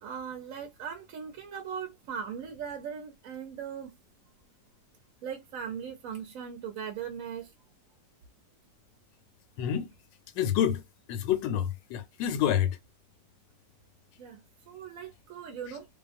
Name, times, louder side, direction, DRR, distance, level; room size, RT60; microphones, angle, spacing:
voice 1, 0.0-3.9 5.2-7.5 14.2-14.4 14.7-15.9, right 7 dB, 65° right, 0.9 m, -39 dB
voice 2, 10.4-10.8 11.1-12.7, left 10 dB, 85° left, 1.3 m, -27 dB
2.8 x 2.2 x 2.5 m
omnidirectional pair, 1.9 m